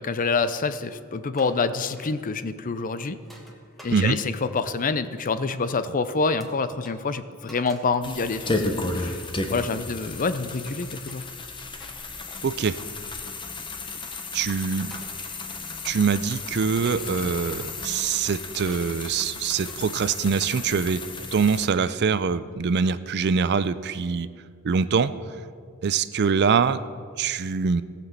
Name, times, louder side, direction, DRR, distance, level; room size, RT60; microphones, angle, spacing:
voice 1, 0.0-3.2 3.8-9.2 9.5-11.2, left 4 dB, 40° left, 13 dB, 0.5 m, -27 dB
sound 1, 1.3-1.7 2.0-2.2 3.2-4.4 5.5-5.6 6.4-6.5 6.8-7.0 7.5-8.0 8.3-8.5 9.0-10.3 11.1-11.3 11.8-12.0 12.7-14.1 14.9-15.3 15.6-16.2 16.9-17.9 18.7-19.0 19.7-19.8, equal, ahead, 1.4 m, -49 dB
sound 2, 8.0-21.7, left 3 dB, 20° left, 0.9 m, -34 dB
voice 2, 12.4-12.8 14.3-15.0 15.8-21.0 21.3-24.3 24.6-25.1 25.8-26.8 27.2-27.8, right 5 dB, 50° right, 14 dB, 0.4 m, -24 dB
17.5 x 6.0 x 7.3 m, 2.1 s
head